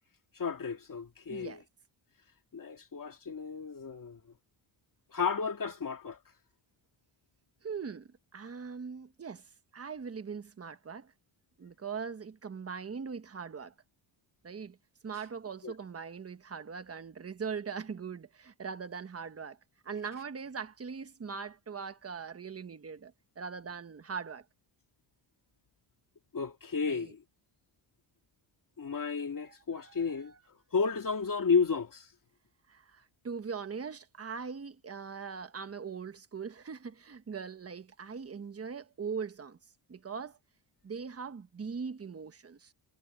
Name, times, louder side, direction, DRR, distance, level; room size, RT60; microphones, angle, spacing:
voice 1, 0.3-1.6 2.5-4.2 5.1-6.2 15.6-15.7 26.3-27.2 28.8-30.3 30.7-32.1, left 5 dB, 45° left, 2.4 m, -32 dB
voice 2, 1.3-1.6 7.6-11.1 11.6-13.7 14.4-14.8 15.0-19.6 19.8-24.4 26.9-27.1 29.4-30.4 32.7-39.6 39.9-40.4 40.8-42.7, right 6 dB, 30° right, 1.2 m, -41 dB
wide cardioid pair, 140°, 47 cm